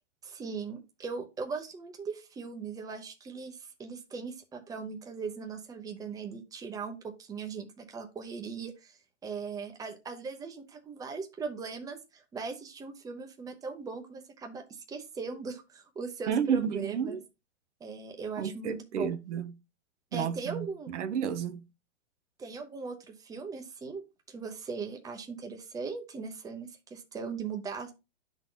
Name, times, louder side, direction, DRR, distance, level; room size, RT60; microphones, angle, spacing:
voice 1, 0.2-17.2 17.8-19.1 20.1-20.9 22.4-24.0 24.3-27.9, right 5 dB, 10° right, 0.8 m, -39 dB
voice 2, 16.3-17.2 18.4-19.5 20.1-21.6, right 7 dB, 75° right, 0.9 m, -31 dB
11.5 x 3.9 x 2.2 m
hypercardioid pair, 130°, 36 cm